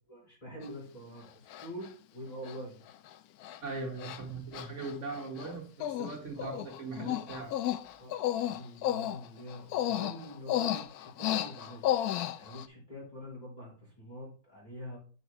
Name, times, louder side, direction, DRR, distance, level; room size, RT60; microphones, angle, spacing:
voice 1, 0.1-2.8 5.3-5.6 6.3-7.5 8.0-11.8 12.4-15.0, equal, 25° left, -4 dB, 4.5 m, -46 dB
Human voice, 0.6-0.7 1.5-1.9 2.5-2.6 2.9-3.1 3.4-3.6 4.0-4.2 4.5-5.5 5.8-6.1 6.4-12.7, left 12 dB, 80° left, 1.1 m, -33 dB
voice 2, 3.6-7.5, right 3 dB, 55° right, 1 dB, 1.5 m, -40 dB
7.8 x 7.4 x 3.0 m, 0.39 s
omnidirectional pair, 1.6 m